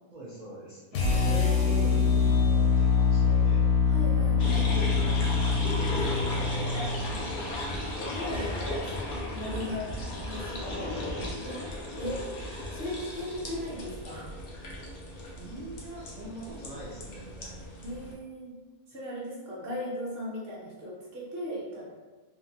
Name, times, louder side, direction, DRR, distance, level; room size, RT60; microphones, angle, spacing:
voice 1, 0.1-3.7 5.7-7.5 10.6-11.3 15.4-17.6, right 1 dB, 70° right, -9 dB, 0.4 m, -42 dB
sound 1, 0.9-7.1, left 5 dB, 85° left, 1.1 m, -24 dB
voice 2, 1.2-1.8 3.8-4.9 8.0-10.0 10.2-10.8 11.4-11.6 12.0-12.3 12.7-14.3 17.8-18.6 18.9-21.9, left 1 dB, 50° right, -6 dB, 1.0 m, -37 dB
sound 2, 4.4-18.1, left 1 dB, 70° left, 0.4 m, -36 dB
2.8 x 2.3 x 2.7 m, 1.3 s
omnidirectional pair, 1.5 m